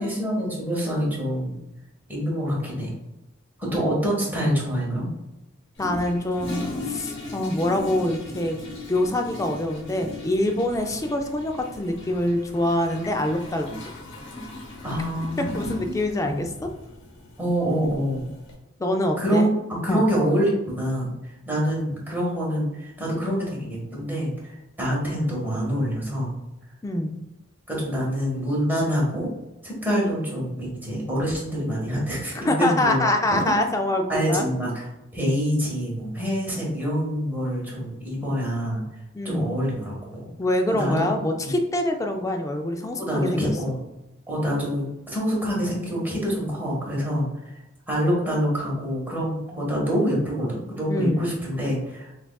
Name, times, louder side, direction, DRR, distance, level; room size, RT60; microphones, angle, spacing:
voice 1, 0.0-1.6 2.1-2.9 3.6-5.1 14.8-15.9 16.2-16.4 17.4-18.2 19.2-26.4 27.7-29.3 29.6-33.6 34.1-34.9 35.1-38.8 39.2-40.3 40.8-41.0 41.4-41.5 43.0-43.8 44.3-47.6 47.9-52.1, equal, 10° right, -5 dB, 1.3 m, -26 dB
Toilet flush, 5.8-18.5, left 2 dB, 65° left, 1.0 m, -38 dB
voice 2, 5.8-8.6 8.9-13.7 15.4-16.5 18.8-19.5 19.9-20.1 26.8-27.2 32.3-34.4 39.1-39.6 40.4-43.5 50.9-51.3, left 1 dB, 15° left, 4 dB, 0.4 m, -25 dB
5.9 x 2.4 x 2.3 m, 0.97 s
head